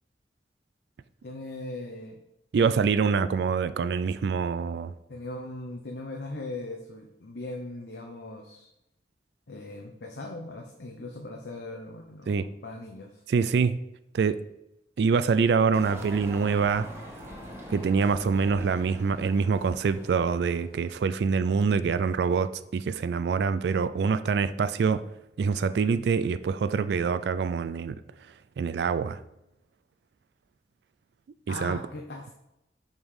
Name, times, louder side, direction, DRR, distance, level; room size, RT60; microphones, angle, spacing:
voice 1, 1.2-2.2 2.5-2.7 5.1-8.7 9.5-12.4 12.6-13.2 31.5-32.3, left 2 dB, 70° left, 0.7 m, -39 dB
voice 2, 2.5-4.9 12.3-12.5 13.3-13.8 14.1-14.4 15.0-16.9 17.7-25.0 25.4-28.0 28.6-29.2 31.5-31.8, right 5 dB, 65° right, 0.3 m, -25 dB
sound 1, 15.7-20.9, equal, 15° right, 1.3 m, -43 dB
5.5 x 5.2 x 4.8 m
head